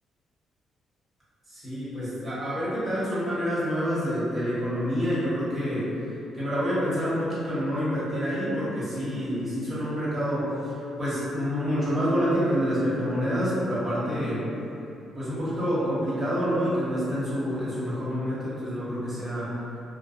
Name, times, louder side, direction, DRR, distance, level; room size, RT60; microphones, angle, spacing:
voice 1, 1.5-5.9 6.3-14.5 15.1-19.6, equal, 20° right, -11 dB, 1.1 m, -27 dB
2.6 x 2.0 x 2.5 m, 2.8 s
cardioid pair, 90°, 0 cm